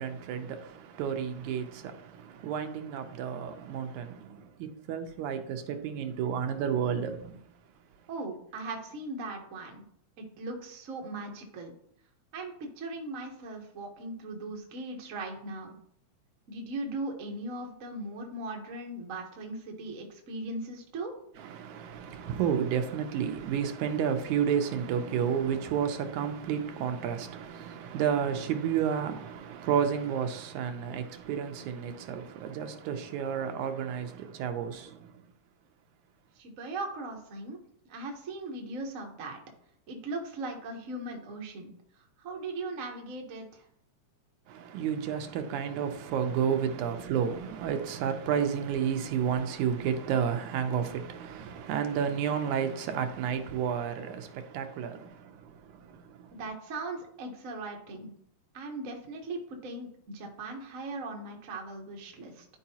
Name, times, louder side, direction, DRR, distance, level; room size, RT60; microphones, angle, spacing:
voice 1, 0.0-7.4 21.4-35.1 44.5-56.4, right 8 dB, 85° right, 2.2 m, -31 dB
voice 2, 8.1-9.8 10.2-11.7 12.3-15.8 16.5-21.2 36.3-37.6 37.9-39.4 39.9-43.7 56.4-58.1 58.5-62.4, right 2 dB, 65° right, 0.8 m, -39 dB
11.5 x 4.7 x 2.8 m
omnidirectional pair, 3.3 m